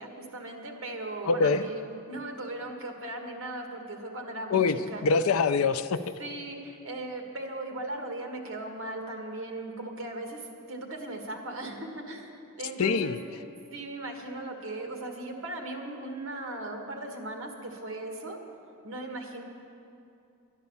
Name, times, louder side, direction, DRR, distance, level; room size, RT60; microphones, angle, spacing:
voice 1, 0.0-5.0 6.2-13.2 13.7-18.4 18.8-19.4, right 2 dB, 60° right, 3 dB, 1.6 m, -38 dB
voice 2, 1.3-1.6 4.5-6.1 12.8-13.2, left 4 dB, 70° left, 12 dB, 0.5 m, -24 dB
12.0 x 10.5 x 7.0 m, 2.7 s
head